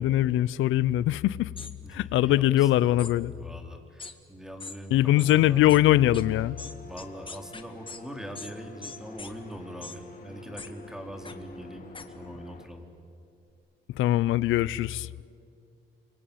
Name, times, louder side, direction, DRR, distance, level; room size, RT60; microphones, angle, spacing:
voice 1, 0.0-1.5 1.9-3.3 4.9-6.6 14.0-15.1, left 14 dB, 85° left, 0.6 m, -22 dB
sound 1, 1.6-1.7 3.0-3.1 4.0-4.1 4.6-4.8 5.2-5.3 5.7-5.8 6.1-6.2 6.6-8.0 8.4-8.5 8.8-9.3 9.8-10.0 10.6-10.7 11.3-11.4 11.9-12.1, left 4 dB, 25° left, 1.9 m, -41 dB
voice 2, 1.8-3.1 3.3-5.7 6.8-11.9 12.2-12.8, equal, 5° right, 3.9 m, -42 dB
sound 2, 5.2-12.7, left 1 dB, 45° left, 3.7 m, -47 dB
28.5 x 24.0 x 8.7 m
cardioid pair, 90°, 20 cm